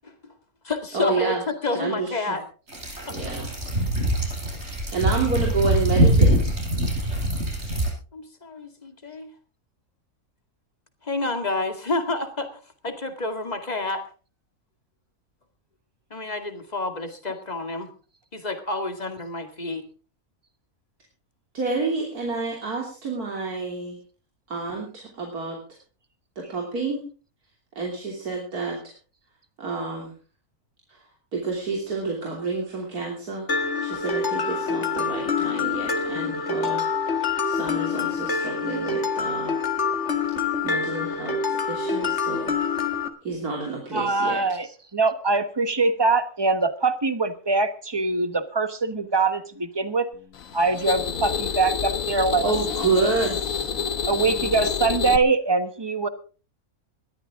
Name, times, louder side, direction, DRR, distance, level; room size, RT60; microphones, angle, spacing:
voice 1, 0.0-0.3 0.6-2.4 2.9-3.2 8.1-9.3 11.0-14.0 16.1-17.9 18.3-19.8, left 2 dB, 25° left, 6 dB, 2.2 m, -29 dB
voice 2, 0.9-1.4 1.7-2.4 3.1-3.5 4.9-6.5 21.5-24.0 24.5-25.6 26.4-27.1 27.8-28.9 29.6-30.1 30.9-31.0 31.3-36.8 37.1-39.6 40.6-42.5 43.2-44.4 52.4-53.7, right 4 dB, 80° right, 0 dB, 3.5 m, -29 dB
sound 1, 2.7-7.9, right 1 dB, 45° right, 5.7 m, -23 dB
Mallet percussion, 33.5-43.1, left 5 dB, 50° left, 1.8 m, -26 dB
voice 3, 43.9-50.1 50.5-52.5 54.1-56.1, right 3 dB, 20° right, 11 dB, 1.1 m, -23 dB
sound 2, 50.3-55.2, left 7 dB, 65° left, 1.3 m, -28 dB
20.5 x 13.0 x 3.7 m, 0.37 s
omnidirectional pair, 1.6 m